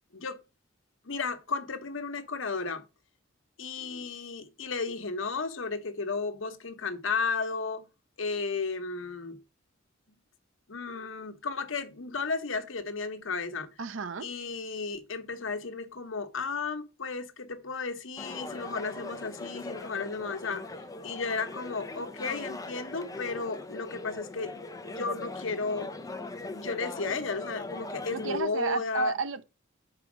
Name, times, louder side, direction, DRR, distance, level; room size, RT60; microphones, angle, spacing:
voice 1, 1.0-2.8 3.6-7.9 8.2-9.4 10.7-13.7 14.2-20.7 21.0-25.9 26.5-29.1, left 4 dB, 75° left, 1.1 m, -34 dB
voice 2, 13.8-14.3 28.1-29.4, right 4 dB, 70° right, 0.7 m, -31 dB
sound 1, 18.2-28.4, left 2 dB, 20° left, 0.7 m, -40 dB
6.2 x 4.9 x 6.0 m
head